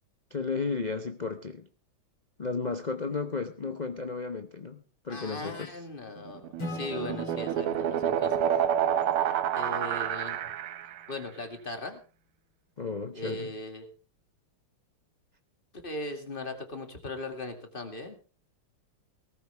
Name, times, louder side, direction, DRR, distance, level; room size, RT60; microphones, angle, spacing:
voice 1, 0.3-1.7 2.4-5.8 12.8-13.5, left 4 dB, 75° left, 6 dB, 0.4 m, -34 dB
voice 2, 5.1-8.5 9.5-10.5 11.1-12.0 13.1-13.9 15.8-18.2, left 2 dB, 25° left, 6 dB, 2.3 m, -38 dB
sound 1, 6.3-11.1, right 10 dB, 85° right, 1.9 m, -28 dB
Acoustic guitar / Strum, 6.6-10.1, left 3 dB, 60° left, 7.3 m, -43 dB
18.0 x 14.5 x 3.4 m, 0.35 s
omnidirectional pair, 2.4 m